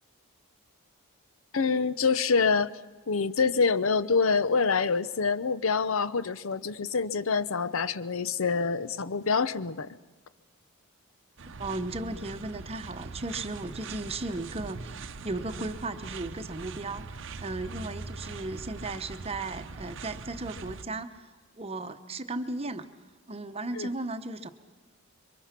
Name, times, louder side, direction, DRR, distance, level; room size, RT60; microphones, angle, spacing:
voice 1, 1.5-2.7 3.1-9.9 23.7-23.9, left 5 dB, 65° left, 15 dB, 0.7 m, -26 dB
sound 1, 11.4-20.8, right 4 dB, 55° right, 0.8 m, -42 dB
voice 2, 11.6-21.3 21.6-22.9 23.3-24.5, right 2 dB, 25° right, 9 dB, 0.9 m, -36 dB
27.0 x 23.5 x 5.9 m, 1.3 s
head